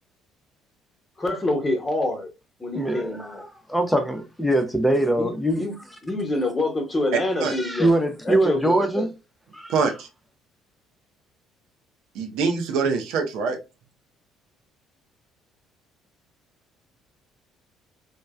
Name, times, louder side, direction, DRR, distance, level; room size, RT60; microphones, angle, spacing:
voice 1, 1.2-2.3 2.6-3.4 5.2-5.3 5.6-5.7 6.0-8.0 8.2-9.1, left 2 dB, 20° left, 1.0 m, -26 dB
voice 2, 2.7-3.3 3.7-5.6 7.4-9.1 9.5-9.7, right 1 dB, 5° left, 0.6 m, -22 dB
voice 3, 9.7-10.1 12.1-13.6, right 5 dB, 65° right, 0.5 m, -24 dB
3.1 x 2.1 x 2.3 m
figure-of-eight pair, 55°, 0 cm